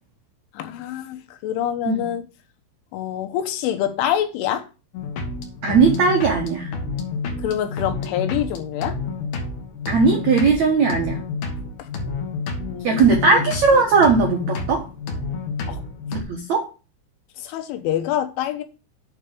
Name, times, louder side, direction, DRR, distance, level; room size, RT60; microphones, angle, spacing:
voice 1, 0.5-2.2 2.9-4.6 7.4-9.0 11.8-11.9 12.6-13.3 15.7-15.8 17.4-18.6, left 11 dB, 80° left, 3.5 m, -26 dB
sound 1, 4.9-16.2, left 3 dB, 60° left, 2.3 m, -29 dB
voice 2, 5.6-6.7 9.9-11.2 12.8-14.8 16.1-16.7, right 4 dB, 80° right, 1.6 m, -18 dB
9.4 x 4.7 x 6.9 m
omnidirectional pair, 5.7 m